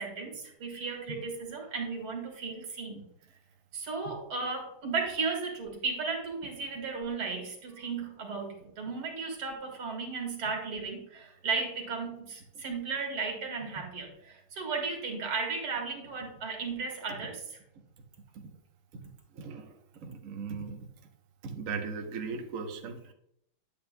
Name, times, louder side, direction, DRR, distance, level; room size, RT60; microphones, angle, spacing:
voice 1, 0.0-3.0 3.7-17.6, right 4 dB, 85° right, 1 dB, 2.8 m, -35 dB
voice 2, 19.3-19.7 20.0-20.8 21.4-23.1, right 5 dB, 50° right, 3 dB, 1.1 m, -37 dB
10.0 x 8.7 x 2.2 m, 0.74 s
omnidirectional pair, 2.2 m